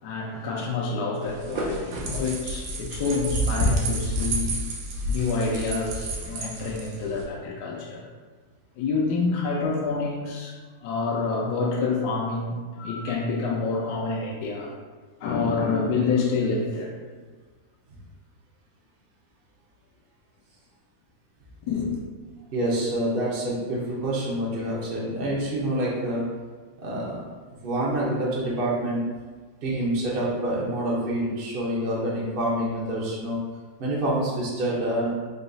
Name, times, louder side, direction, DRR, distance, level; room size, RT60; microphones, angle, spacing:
voice 1, 0.0-4.6 5.1-8.1 8.8-14.7 15.2-16.9 21.6-21.9, left 4 dB, 70° left, -2 dB, 1.1 m, -27 dB
sound 1, 1.2-7.2, right 1 dB, 85° right, 1.4 m, -29 dB
voice 2, 22.5-26.2 26.8-27.2 27.6-29.0 29.6-33.4 33.8-35.2, right 1 dB, 55° right, -5 dB, 0.6 m, -27 dB
4.0 x 2.3 x 3.8 m, 1.4 s
omnidirectional pair, 2.0 m